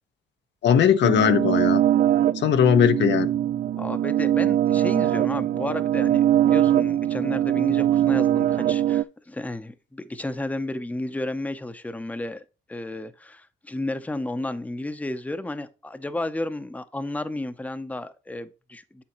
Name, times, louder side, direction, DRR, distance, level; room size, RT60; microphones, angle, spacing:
voice 1, 0.6-1.8 2.4-3.3, left 8 dB, 65° left, 0.8 m, -19 dB
sound 1, 1.0-9.0, right 11 dB, 45° right, 0.4 m, -22 dB
voice 2, 3.8-19.0, left 2 dB, 5° left, 0.7 m, -32 dB
8.2 x 7.2 x 3.1 m
cardioid pair, 90°, 20 cm